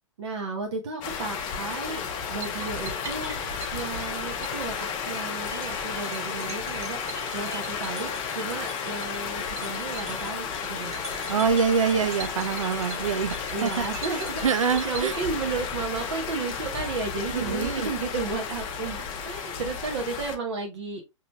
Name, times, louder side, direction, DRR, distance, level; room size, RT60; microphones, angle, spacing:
voice 1, 0.2-2.0 2.3-3.4 3.7-4.8 5.1-7.0 7.3-10.9 13.5-14.4 14.8-21.0, right 4 dB, 60° right, 0.9 m, -33 dB
sound 1, 1.0-20.4, left 6 dB, 30° left, 0.7 m, -33 dB
sound 2, 2.4-15.9, right 4 dB, 15° right, 1.0 m, -43 dB
voice 2, 11.3-13.4 13.6-13.8 14.4-15.2 17.3-17.9, right 6 dB, 75° right, 0.5 m, -25 dB
5.0 x 2.9 x 2.2 m
figure-of-eight pair, 115°, 17 cm